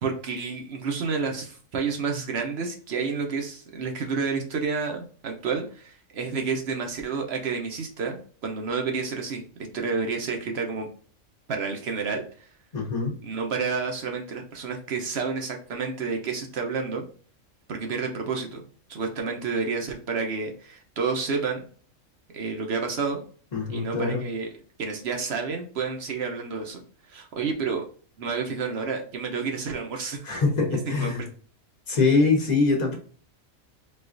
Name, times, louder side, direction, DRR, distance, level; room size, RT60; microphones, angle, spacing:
voice 1, 0.0-9.4 9.7-10.9 11.5-12.2 13.2-17.1 17.7-18.6 18.9-21.6 22.3-23.2 23.7-24.5 24.8-26.8 27.1-27.8 28.2-30.2 30.7-31.3, right 5 dB, 60° right, 3 dB, 0.8 m, -30 dB
voice 2, 12.7-13.1 23.5-24.2 30.2-31.2 31.9-33.0, left 4 dB, 35° left, 0 dB, 0.8 m, -23 dB
4.1 x 2.3 x 2.5 m, 0.42 s
omnidirectional pair, 1.5 m